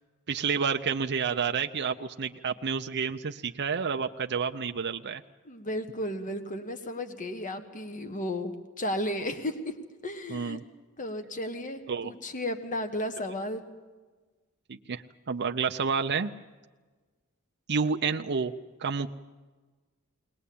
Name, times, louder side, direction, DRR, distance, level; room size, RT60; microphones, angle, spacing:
voice 1, 0.3-5.2 10.3-10.6 11.9-12.1 14.7-16.3 17.7-18.5 18.8-19.1, right 5 dB, 50° right, 5 dB, 0.7 m, -29 dB
voice 2, 5.4-9.7 10.0-10.6 11.0-13.6, left 1 dB, 35° left, 8 dB, 1.5 m, -34 dB
21.0 x 19.5 x 8.6 m, 1.3 s
head